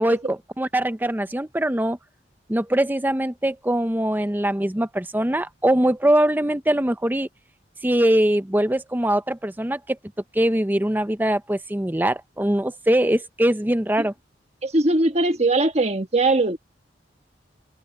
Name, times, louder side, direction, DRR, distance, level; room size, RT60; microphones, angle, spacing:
voice 1, 0.0-2.0 2.5-7.3 7.8-10.0 10.3-14.1, right 1 dB, 10° right, 0.7 m, -22 dB
voice 2, 14.6-16.6, right 2 dB, 35° right, 1.5 m, -20 dB
open air
head